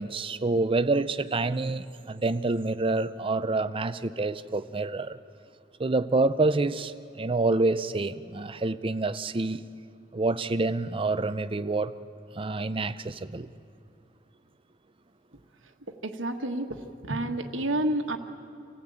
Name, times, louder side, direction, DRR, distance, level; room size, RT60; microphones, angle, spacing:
voice 1, 0.0-5.2 5.8-9.6 10.1-11.9 12.3-13.5, right 3 dB, 25° right, 13 dB, 0.6 m, -27 dB
voice 2, 16.0-18.2, right 1 dB, 70° right, 5 dB, 1.4 m, -29 dB
26.5 x 15.5 x 8.8 m, 2.6 s
head